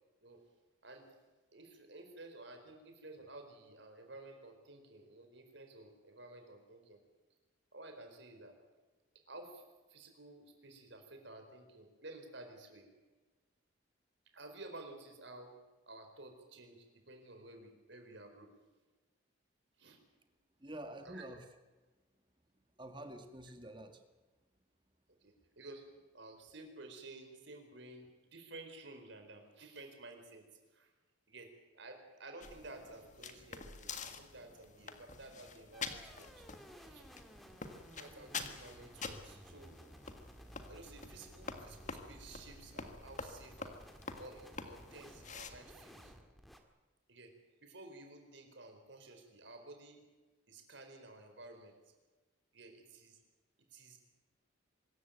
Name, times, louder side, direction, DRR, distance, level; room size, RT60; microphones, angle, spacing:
voice 1, 1.5-7.0 7.7-8.5 9.3-9.6 9.9-12.9 14.3-15.5 15.9-18.5 19.8-20.0 21.0-21.3 25.2-25.8 26.1-30.9 31.3-36.4 36.8-37.1 37.9-39.8 40.7-43.8 44.2-46.1 47.1-47.3 47.6-50.0 50.5-51.7 52.5-53.2 53.7-54.0, right 2 dB, 65° right, 5 dB, 4.5 m, -53 dB
voice 2, 20.6-21.4 22.8-24.0, right 1 dB, 25° right, 6 dB, 1.9 m, -47 dB
sound 1, 32.4-45.5, left 5 dB, 40° left, 1.8 m, -48 dB
sound 2, 35.7-46.6, equal, ahead, 1.7 m, -56 dB
24.5 x 14.5 x 9.2 m, 1.3 s
head